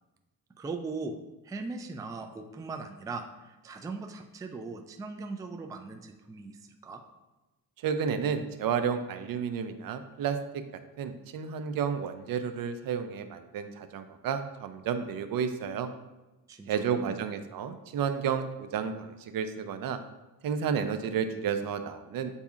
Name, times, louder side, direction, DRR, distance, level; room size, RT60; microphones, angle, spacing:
voice 1, 0.6-1.2 1.4-7.0 16.5-17.2, right 3 dB, 10° right, 4 dB, 0.3 m, -39 dB
voice 2, 7.8-10.6 11.0-15.9 16.7-20.0 20.4-22.4, right 7 dB, 65° right, 9 dB, 0.5 m, -31 dB
8.0 x 2.7 x 2.4 m, 1.1 s
cardioid pair, 95°, 37 cm